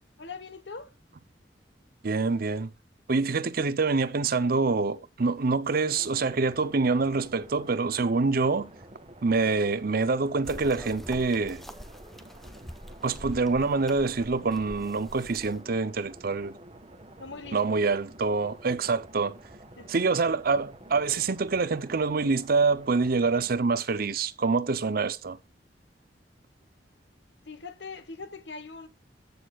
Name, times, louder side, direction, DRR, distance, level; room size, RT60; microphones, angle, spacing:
voice 1, 0.2-0.9 17.2-17.8 19.8-19.9 27.5-28.9, left 4 dB, 75° left, 1.2 m, -42 dB
voice 2, 2.0-2.7 3.1-8.7 9.2-11.6 13.0-16.5 17.5-19.4 19.9-25.4, right 4 dB, 55° right, 0.7 m, -26 dB
sound 1, 5.9-23.5, right 1 dB, 35° right, 1.7 m, -50 dB
sound 2, 10.4-15.6, equal, ahead, 1.0 m, -44 dB
14.5 x 6.5 x 2.4 m
head